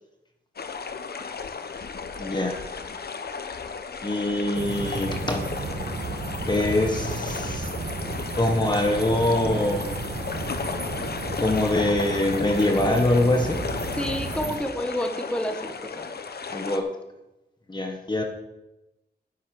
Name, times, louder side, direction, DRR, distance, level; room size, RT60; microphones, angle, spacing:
sound 1, 0.6-16.8, left 5 dB, 65° left, 0.9 m, -35 dB
voice 1, 2.2-2.6 4.0-5.4 6.5-7.7 8.4-9.9 11.4-13.6 16.5-16.8 17.7-18.2, left 1 dB, 25° left, 2 dB, 1.4 m, -24 dB
sound 2, 4.5-14.6, right 3 dB, 80° right, 1.8 m, -33 dB
voice 2, 13.9-16.1, equal, 5° left, 4 dB, 1.6 m, -29 dB
10.5 x 7.7 x 7.8 m, 0.99 s
wide cardioid pair, 95°, 17 cm